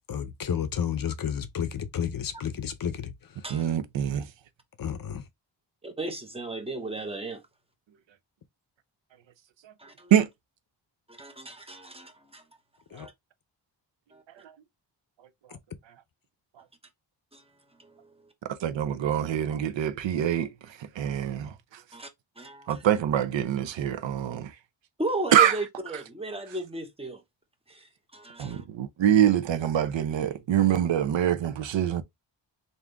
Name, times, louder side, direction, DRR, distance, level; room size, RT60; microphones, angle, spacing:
voice 1, 0.1-3.4 4.8-5.3 12.9-13.1, left 8 dB, 50° left, 0.6 m, -31 dB
voice 2, 3.5-4.3 10.1-10.3 18.6-20.5 21.0-21.5 22.7-24.5 25.3-25.6 28.4-32.0, right 10 dB, 75° right, 0.7 m, -24 dB
voice 3, 5.8-7.4 9.8-9.9 11.1-12.4 13.0-13.1 14.1-14.2 17.3-17.4 17.8-18.1 21.9-22.1 22.4-22.8 25.0-27.2 27.7-28.6, right 2 dB, 15° right, 0.9 m, -35 dB
3.6 x 2.7 x 3.4 m
wide cardioid pair, 110°, 45 cm